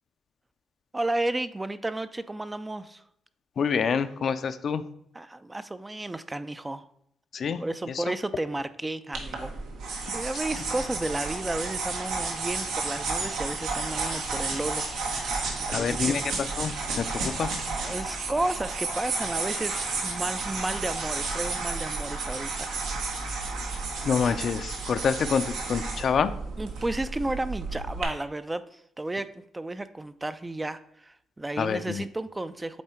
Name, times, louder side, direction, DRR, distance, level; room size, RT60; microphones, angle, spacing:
voice 1, 0.9-3.0 5.1-6.9 7.6-9.5 9.8-16.4 17.8-23.1 26.6-29.3 29.5-32.8, right 2 dB, 15° right, 12 dB, 0.3 m, -33 dB
voice 2, 3.6-4.8 7.3-7.6 7.9-8.0 15.7-16.2 16.6-17.5 24.0-26.3 31.6-32.0, left 6 dB, 55° left, 11 dB, 0.4 m, -27 dB
sound 1, 9.1-28.0, right 3 dB, 90° right, 1.4 m, -32 dB
8.2 x 3.3 x 4.4 m, 0.72 s
cardioid pair, 90°, 0 cm